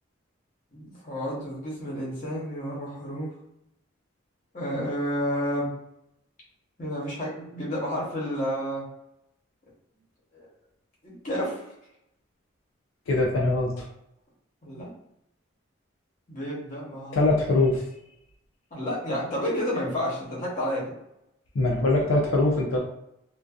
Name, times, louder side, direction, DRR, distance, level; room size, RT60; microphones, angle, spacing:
voice 1, 0.7-3.3 4.5-5.7 6.8-8.8 10.3-10.5 11.0-11.7 14.6-14.9 16.3-17.3 18.7-20.9, equal, 40° left, -6 dB, 0.9 m, -30 dB
voice 2, 13.1-13.8 17.1-17.8 21.6-22.8, left 2 dB, 85° left, -1 dB, 0.5 m, -22 dB
2.5 x 2.2 x 2.3 m, 0.82 s
head